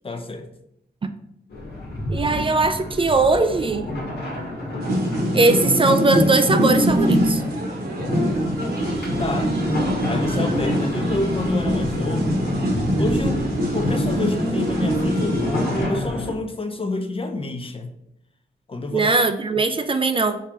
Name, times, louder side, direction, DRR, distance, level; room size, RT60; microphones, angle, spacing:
voice 1, 0.0-0.5 9.2-9.6 10.1-12.5 12.9-13.5 13.7-17.9 18.7-19.1, left 2 dB, 30° left, 7 dB, 0.5 m, -28 dB
sound 1, 1.5-16.3, left 1 dB, 70° left, 1.3 m, -30 dB
voice 2, 2.1-3.9 5.3-7.4 18.9-20.4, right 3 dB, 30° right, 8 dB, 0.4 m, -19 dB
sound 2, 4.8-15.9, equal, 65° right, 1.2 m, -23 dB
4.6 x 3.7 x 2.9 m, 0.79 s
wide cardioid pair, 95°, 17 cm